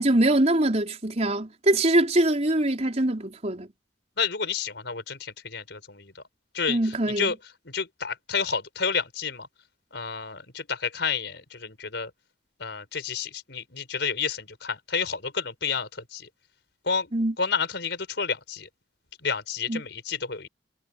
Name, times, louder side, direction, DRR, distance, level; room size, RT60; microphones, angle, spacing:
voice 1, 0.0-3.7 6.7-7.3 17.1-17.3 19.7-19.8, right 1 dB, 40° right, 4.7 m, -23 dB
voice 2, 4.2-6.2 6.5-6.8 7.2-7.4 7.7-9.5 9.9-12.1 12.6-16.3 16.8-17.1 17.4-18.7 19.2-20.5, left 5 dB, 70° left, 5.5 m, -30 dB
head